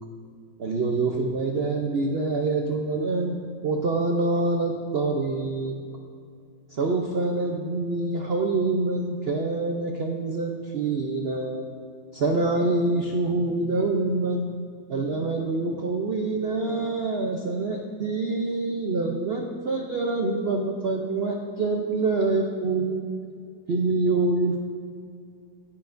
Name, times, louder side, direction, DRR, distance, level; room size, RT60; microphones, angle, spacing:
voice 1, 0.6-3.4 3.6-5.7 6.7-11.6 12.1-14.5 14.9-23.0 23.7-24.6, right 3 dB, 75° right, 2 dB, 0.5 m, -26 dB
11.0 x 10.5 x 2.6 m, 2.3 s
omnidirectional pair, 1.9 m